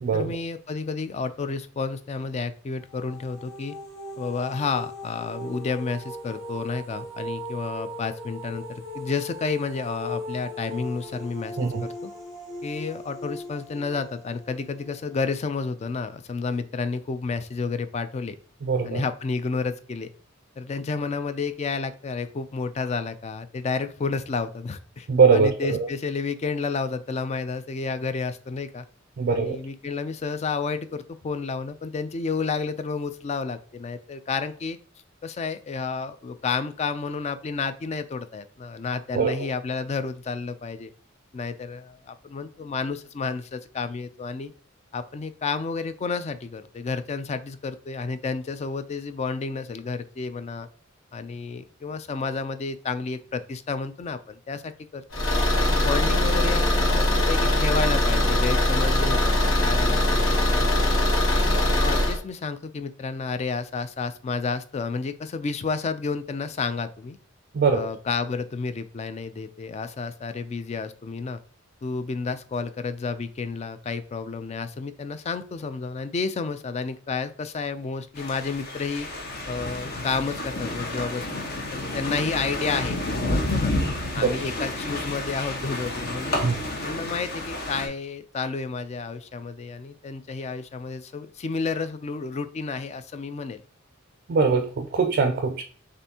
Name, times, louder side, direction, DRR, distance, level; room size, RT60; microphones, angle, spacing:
voice 1, 0.1-3.7 4.2-12.1 12.6-18.4 18.8-20.1 20.6-28.8 29.3-34.8 35.2-40.9 41.3-44.5 44.9-50.7 51.1-55.0 55.7-60.9 61.8-67.2 67.7-71.4 71.8-79.1 79.5-83.7 84.1-86.4 86.8-93.6, left 4 dB, 35° left, 11 dB, 0.3 m, -31 dB
sound 1, 2.8-15.6, left 1 dB, 20° left, 1.1 m, -38 dB
voice 2, 18.6-19.0 25.1-25.9 29.2-29.6 39.1-39.5 67.5-67.9 84.2-84.3 86.4-86.6 94.3-95.6, right 5 dB, 50° right, 6 dB, 0.4 m, -22 dB
Car / Engine, 55.1-62.2, left 1 dB, 90° left, 1.2 m, -21 dB
sound 2, 78.2-87.9, left 1 dB, 50° left, 1.1 m, -30 dB
6.7 x 2.6 x 2.8 m, 0.43 s
head